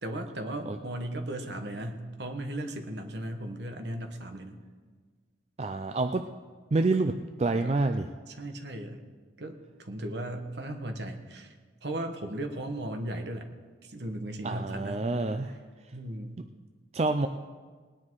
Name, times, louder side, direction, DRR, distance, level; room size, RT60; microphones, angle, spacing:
voice 1, 0.0-4.6 7.6-7.7 8.3-9.0 9.4-11.6 11.8-13.5 13.8-15.1 15.9-16.4, right 1 dB, 60° right, 5 dB, 1.3 m, -36 dB
voice 2, 5.6-6.2 6.7-8.1 14.4-15.6 16.9-17.3, right 3 dB, 35° right, 7 dB, 0.4 m, -27 dB
19.0 x 9.8 x 4.7 m, 1.5 s
head